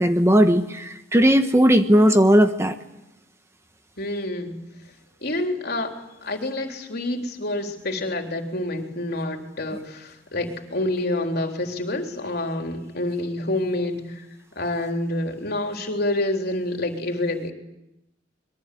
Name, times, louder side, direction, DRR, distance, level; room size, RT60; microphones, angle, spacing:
voice 1, 0.0-2.7, equal, 15° right, 7 dB, 1.1 m, -17 dB
voice 2, 4.0-4.6 5.2-5.9 6.2-14.2 14.6-17.5, left 1 dB, 55° left, 3 dB, 3.8 m, -27 dB
26.0 x 22.5 x 8.6 m, 0.90 s
head